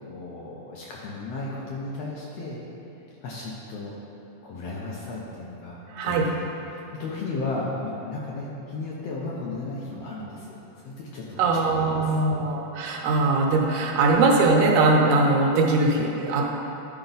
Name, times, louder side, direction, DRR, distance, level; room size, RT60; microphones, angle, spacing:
voice 1, 0.1-2.6 3.2-4.0 4.4-5.8 6.0-10.6 10.9-12.2, left 2 dB, 70° left, -5 dB, 1.6 m, -34 dB
voice 2, 5.9-6.3 11.4-16.6, right 3 dB, 75° right, 0 dB, 2.1 m, -21 dB
11.5 x 4.5 x 4.0 m, 3.0 s
omnidirectional pair, 3.6 m